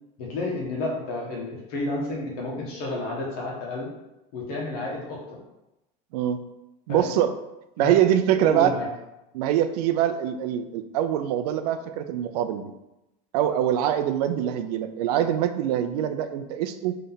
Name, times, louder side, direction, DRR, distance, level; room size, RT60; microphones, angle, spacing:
voice 1, 0.2-3.9 4.3-5.4 6.9-7.2 7.8-8.0 8.4-8.8, left 2 dB, 70° left, -2 dB, 1.7 m, -31 dB
voice 2, 6.9-7.3 7.8-8.7 9.3-12.7 13.3-17.0, right 10 dB, 85° right, 9 dB, 0.5 m, -24 dB
4.0 x 3.3 x 4.0 m, 0.94 s
cardioid pair, 180°, 20 cm